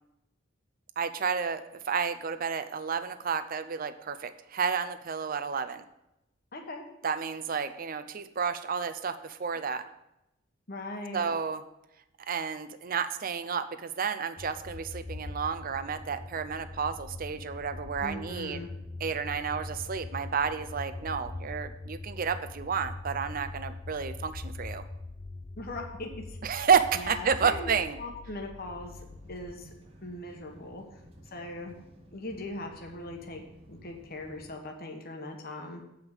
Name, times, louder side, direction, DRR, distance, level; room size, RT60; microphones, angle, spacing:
voice 1, 1.0-5.8 7.0-9.8 11.1-11.6 12.3-18.6 19.0-24.8 26.4-28.0, right 6 dB, 45° right, 10 dB, 0.6 m, -31 dB
voice 2, 6.5-6.8 10.7-11.3 18.0-18.7 25.6-26.4 26.9-27.7 28.0-29.0 29.3-29.7 30.0-30.8 31.3-31.8 32.1-33.4 33.7-35.8, left 2 dB, 50° left, 2 dB, 1.3 m, -39 dB
sound 1, 14.4-29.6, left 2 dB, 25° left, 0.3 m, -42 dB
sound 2, 28.7-34.6, equal, 30° right, 1.2 m, -54 dB
8.0 x 5.2 x 7.1 m, 0.88 s
head